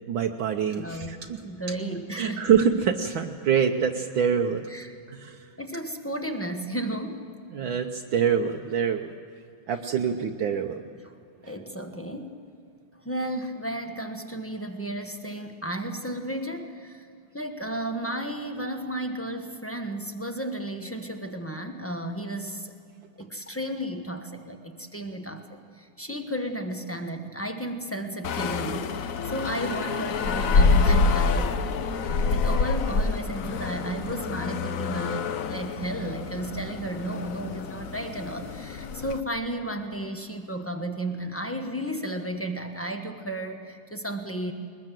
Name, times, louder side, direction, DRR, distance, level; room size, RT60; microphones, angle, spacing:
voice 1, 0.1-1.4 2.2-4.7 5.1-5.4 7.5-9.1 9.7-10.9, right 7 dB, 70° right, 3 dB, 1.5 m, -25 dB
voice 2, 0.7-2.5 4.7-4.9 5.6-7.2 10.1-10.2 11.0-11.2 11.4-12.4 13.0-17.1 17.3-22.7 23.2-31.6 32.0-44.5, right 1 dB, 10° left, 5 dB, 0.7 m, -33 dB
sound 1, 28.2-39.2, left 4 dB, 60° left, 0.9 m, -26 dB
21.5 x 20.5 x 7.6 m, 2.5 s
omnidirectional pair, 2.4 m